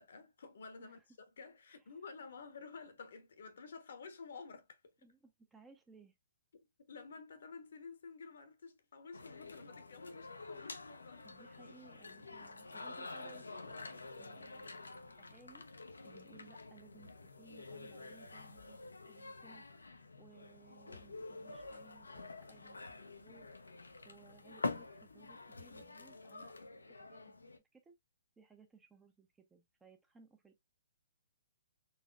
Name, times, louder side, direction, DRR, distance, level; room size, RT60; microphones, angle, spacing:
voice 1, 0.0-4.9 6.5-11.5, left 4 dB, 65° left, 1.0 m, -52 dB
voice 2, 5.0-6.1 11.2-15.6 16.0-27.4 27.7-27.9 28.4-30.6, right 5 dB, 10° right, 0.7 m, -63 dB
sound 1, 9.1-27.6, left 3 dB, 85° left, 0.6 m, -48 dB
4.1 x 2.9 x 2.3 m
figure-of-eight pair, 130°, 0 cm